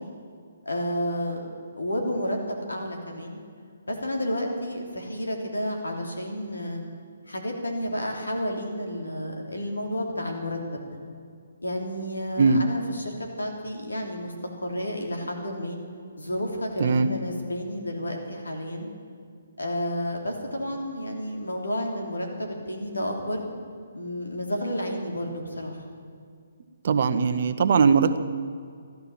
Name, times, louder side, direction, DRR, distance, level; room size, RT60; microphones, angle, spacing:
voice 1, 0.6-1.5 1.7-3.4 3.9-6.8 7.3-10.6 11.6-14.3 14.6-15.8 16.2-18.9 19.6-23.4 23.9-25.8, equal, 90° left, 1 dB, 3.2 m, -31 dB
voice 2, 26.8-28.2, right 5 dB, 55° right, 8 dB, 1.0 m, -20 dB
14.5 x 12.0 x 7.3 m, 2.2 s
figure-of-eight pair, 140°, 0 cm